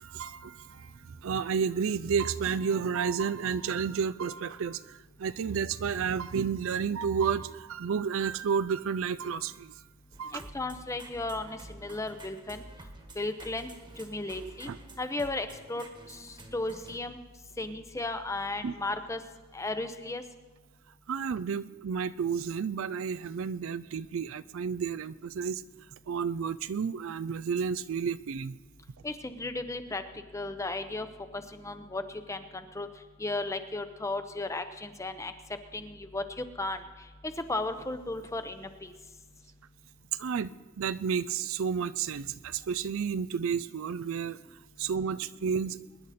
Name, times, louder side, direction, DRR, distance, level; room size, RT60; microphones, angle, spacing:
voice 1, 0.0-9.7 10.2-10.4 14.7-14.8 18.6-18.7 21.1-25.6 26.1-28.6 40.1-44.4 44.8-45.8, right 6 dB, 60° right, 16 dB, 0.4 m, -31 dB
sound 1, 10.1-17.0, right 1 dB, 20° right, 1.4 m, -50 dB
voice 2, 10.3-12.6 13.2-13.7 14.0-14.7 15.0-17.2 17.6-19.2 19.5-20.2 29.0-30.0 30.3-31.1 31.3-32.9 33.2-35.3 35.7-38.9, left 2 dB, 15° left, 9 dB, 0.7 m, -35 dB
23.0 x 10.5 x 4.2 m, 1.3 s
head